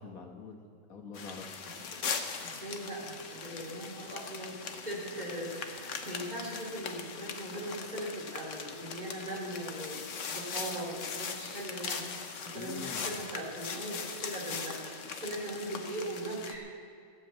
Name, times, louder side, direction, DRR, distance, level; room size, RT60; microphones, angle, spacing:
voice 1, 0.0-1.6 12.5-13.2, left 4 dB, 85° left, 2 dB, 1.9 m, -45 dB
sound 1, 1.1-16.6, left 5 dB, 65° left, 1.3 m, -40 dB
voice 2, 2.4-10.0 10.3-12.0 12.4-16.7, right 1 dB, 30° right, -5 dB, 3.8 m, -40 dB
15.0 x 7.8 x 8.6 m, 2.4 s
omnidirectional pair, 1.4 m